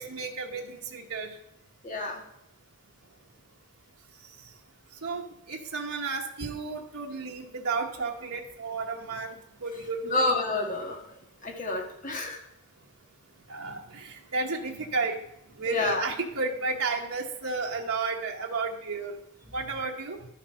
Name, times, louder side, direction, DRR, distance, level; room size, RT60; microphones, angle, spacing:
voice 1, 0.0-1.3 5.0-9.3 9.6-10.2 13.5-15.2 15.6-19.2 19.5-20.2, right 4 dB, 80° right, 1 dB, 1.0 m, -32 dB
voice 2, 1.8-2.2 10.0-11.0 11.4-12.4 15.7-16.1, left 2 dB, 35° left, 1 dB, 1.8 m, -29 dB
11.5 x 7.1 x 5.7 m, 0.87 s
head